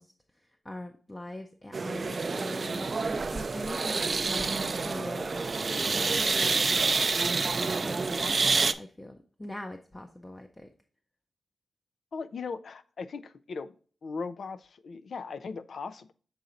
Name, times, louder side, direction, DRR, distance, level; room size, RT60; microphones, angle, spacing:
voice 1, 0.0-7.0 7.2-10.7, left 1 dB, 15° left, 5 dB, 0.5 m, -43 dB
sound 1, 1.7-8.7, right 4 dB, 45° right, 0.3 m, -28 dB
voice 2, 12.1-13.7 14.0-16.1, left 4 dB, 70° left, 13 dB, 0.4 m, -38 dB
6.9 x 4.0 x 3.7 m, 0.42 s
wide cardioid pair, 115°, 0 cm